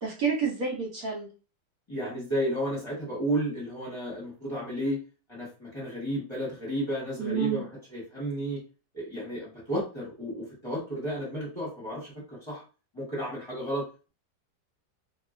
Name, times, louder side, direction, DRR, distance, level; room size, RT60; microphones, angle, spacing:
voice 1, 0.0-1.3 7.2-7.6, right 6 dB, 60° right, -3 dB, 1.2 m, -29 dB
voice 2, 1.9-5.0 5.3-8.6 8.9-12.6 12.9-14.1, right 1 dB, 20° left, -7 dB, 1.2 m, -32 dB
2.8 x 2.8 x 2.4 m, 0.34 s
omnidirectional pair, 1.9 m